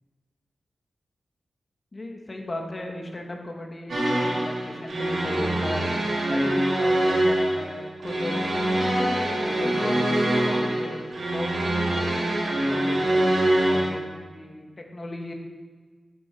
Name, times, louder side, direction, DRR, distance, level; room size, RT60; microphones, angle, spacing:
voice 1, 1.9-5.9 6.3-9.0 9.2-11.0 11.3-15.3, left 1 dB, 40° left, 2 dB, 2.6 m, -36 dB
sound 1, 3.9-13.9, right 1 dB, 70° right, 3.8 m, -24 dB
10.0 x 8.8 x 6.6 m, 1.5 s
cardioid pair, 45°, 0 cm